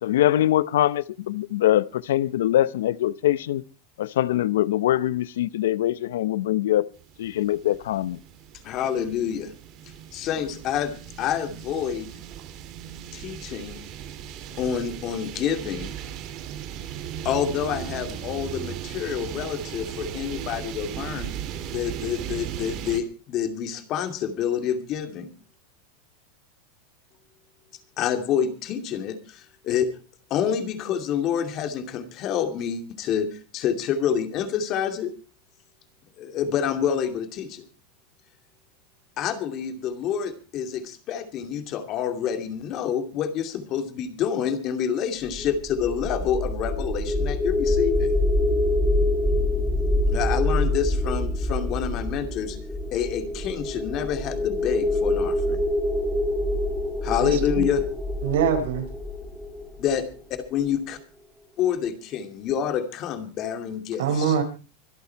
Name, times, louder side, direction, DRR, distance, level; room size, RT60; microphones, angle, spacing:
voice 1, 0.0-3.6 4.0-6.9 7.2-8.2, left 13 dB, 85° left, 0.7 m, -23 dB
sound 1, 6.9-23.0, right 10 dB, 40° right, 2.6 m, -37 dB
voice 2, 8.6-9.5 10.1-12.1 13.1-13.8 14.6-15.9 17.2-21.3 21.7-25.3 28.0-29.9 30.3-35.1 36.2-37.6 39.2-48.1 50.1-52.6 52.9-55.6 57.0-57.8 59.8-60.0 60.3-61.0 61.6-64.4, left 8 dB, 35° left, 2.6 m, -27 dB
sound 2, 45.3-60.4, left 1 dB, ahead, 1.8 m, -25 dB
voice 3, 57.2-57.7 58.2-58.8 64.0-64.4, right 7 dB, 80° right, 4.8 m, -24 dB
25.0 x 8.6 x 4.6 m
supercardioid pair, 155°, 0 cm